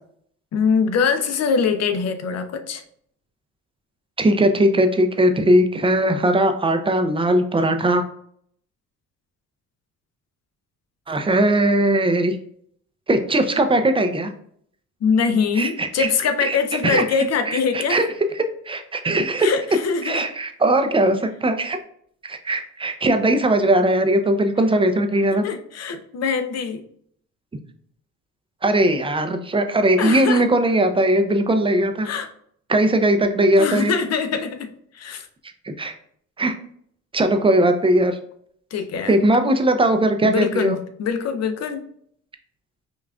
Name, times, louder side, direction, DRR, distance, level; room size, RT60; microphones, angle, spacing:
voice 1, 0.5-2.8 15.0-18.1 19.4-20.2 25.4-26.8 30.0-30.4 32.0-32.3 33.6-34.7 34.9-35.3 38.7-39.3 40.2-41.8, left 5 dB, 55° left, 7 dB, 0.6 m, -23 dB
voice 2, 4.2-8.0 11.1-12.4 13.1-14.3 15.6-16.1 16.4-16.6 16.8-17.0 17.5-18.1 18.4-19.5 20.0-21.8 22.2-25.4 28.6-32.1 32.7-33.9 35.6-35.9 36.4-36.5 37.1-38.2 39.1-40.8, right 1 dB, 20° right, 7 dB, 0.4 m, -19 dB
5.3 x 2.4 x 2.4 m, 0.64 s
cardioid pair, 90°, 30 cm